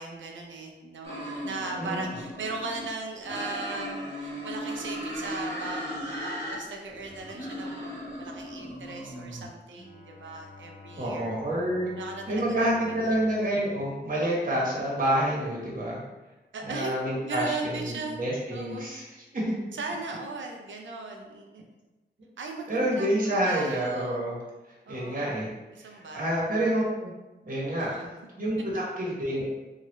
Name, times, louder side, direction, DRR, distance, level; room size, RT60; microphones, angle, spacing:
voice 1, 0.0-7.9 8.2-11.3 11.9-13.2 16.5-18.2 18.5-18.9 19.7-21.6 22.4-24.2 24.9-25.3 25.7-26.3 27.8-28.2, right 3 dB, 90° right, 2 dB, 0.5 m, -38 dB
sound 1, 1.0-2.9 3.2-6.6 6.9-9.5, equal, 15° left, 1.5 m, -37 dB
Bowed string instrument, 9.7-14.9, left 4 dB, 45° left, 0.6 m, -51 dB
voice 2, 10.9-11.9 12.3-16.0 16.6-19.0 19.3-19.5 22.7-24.4 24.9-25.5 25.8-27.1 27.4-27.9 28.4-29.4, right 1 dB, 45° right, -5 dB, 1.1 m, -28 dB
3.1 x 2.4 x 2.9 m, 1.1 s
wide cardioid pair, 75°, 19 cm